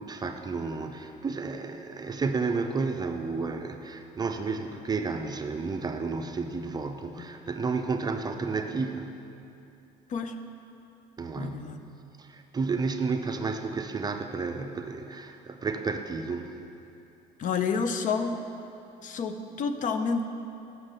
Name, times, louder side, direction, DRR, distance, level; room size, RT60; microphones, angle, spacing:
voice 1, 0.0-9.2 11.2-11.8 12.2-16.5, right 4 dB, 25° right, 6 dB, 0.5 m, -31 dB
voice 2, 11.4-11.8 17.4-18.4 19.0-20.2, left 5 dB, 50° left, 8 dB, 0.6 m, -29 dB
7.2 x 6.2 x 6.6 m, 2.8 s
cardioid pair, 110°, 17 cm